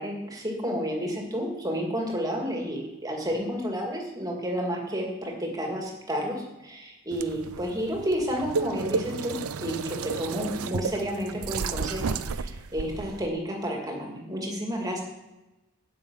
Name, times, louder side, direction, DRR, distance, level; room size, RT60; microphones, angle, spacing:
voice 1, 0.0-15.0, equal, 15° right, 0 dB, 2.1 m, -31 dB
sound 1, 7.1-13.3, right 5 dB, 80° right, 0.5 m, -32 dB
9.1 x 7.1 x 8.7 m, 1.0 s
head